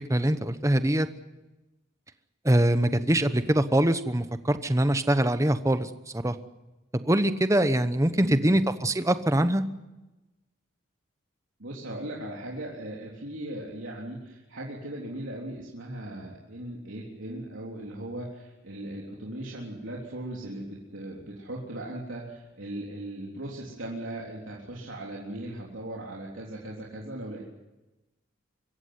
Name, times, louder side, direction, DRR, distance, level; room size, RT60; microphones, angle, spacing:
voice 1, 0.1-1.1 2.4-6.3 6.9-9.6, right 1 dB, 15° right, 11 dB, 1.0 m, -23 dB
voice 2, 8.1-8.6 11.6-27.4, right 1 dB, 75° right, -4 dB, 3.6 m, -38 dB
25.0 x 15.0 x 9.6 m, 1.0 s
head